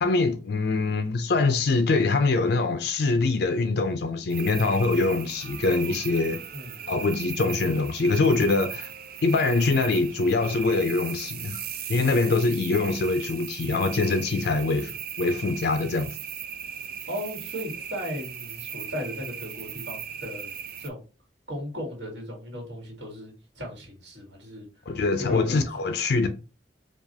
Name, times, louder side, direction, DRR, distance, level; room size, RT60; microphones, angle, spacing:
voice 1, 0.0-6.4 6.9-8.9 9.2-11.6 11.9-16.2 24.9-26.3, left 3 dB, 65° left, 0.4 m, -24 dB
sound 1, 4.3-20.9, right 8 dB, 55° right, 0.5 m, -37 dB
voice 2, 6.5-6.9 17.1-20.5 20.8-21.0 21.5-24.7 25.2-25.7, left 1 dB, 70° right, 1.8 m, -36 dB
4.6 x 2.4 x 2.7 m
head